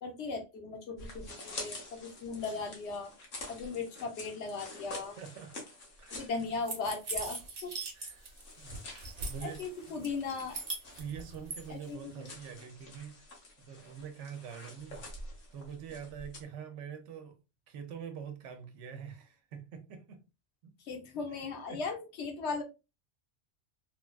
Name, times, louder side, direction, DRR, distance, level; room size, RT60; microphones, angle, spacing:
voice 1, 0.0-3.1 3.5-5.2 6.1-7.7 9.4-10.6 11.7-12.3 20.8-22.6, left 4 dB, 65° left, 1.0 m, -38 dB
sound 1, 1.0-7.1 7.4-7.5 8.1-16.4, left 2 dB, 85° left, 1.3 m, -48 dB
voice 2, 1.7-2.0 5.2-5.6 6.0-6.3 7.9-10.0 11.0-13.3 13.6-15.1 15.5-17.4 17.7-20.2 20.6-20.7 21.1-21.8, right 7 dB, 80° right, 0.9 m, -45 dB
sound 2, 6.7-8.4 8.7-9.6 10.0-11.6, right 3 dB, 40° right, 0.7 m, -39 dB
3.2 x 2.3 x 2.3 m
omnidirectional pair, 1.2 m